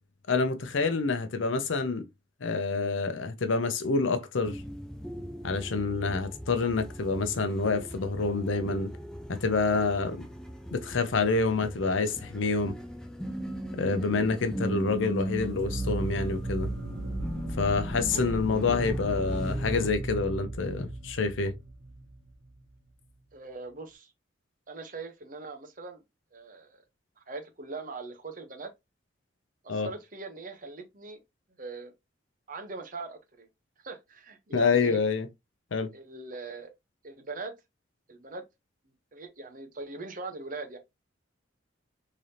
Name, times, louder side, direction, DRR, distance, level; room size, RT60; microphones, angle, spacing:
voice 1, 0.3-2.1 2.4-4.6 5.4-8.9 9.3-10.2 10.7-12.8 13.7-16.7 17.6-21.5 29.7-29.9 34.5-35.3 35.7-35.9, left 4 dB, 75° left, 0.6 m, -27 dB
sound 1, 4.4-19.9, right 1 dB, 5° left, 0.4 m, -39 dB
sound 2, 15.2-22.6, right 2 dB, 80° right, 1.6 m, -35 dB
voice 2, 18.1-18.4 23.3-24.1 24.7-26.0 26.3-26.8 27.3-28.7 29.6-31.2 31.6-31.9 32.5-33.5 33.8-35.0 35.9-36.7 37.0-37.5 38.1-38.4 39.1-40.8, right 3 dB, 40° right, 0.9 m, -41 dB
3.7 x 3.3 x 2.8 m
head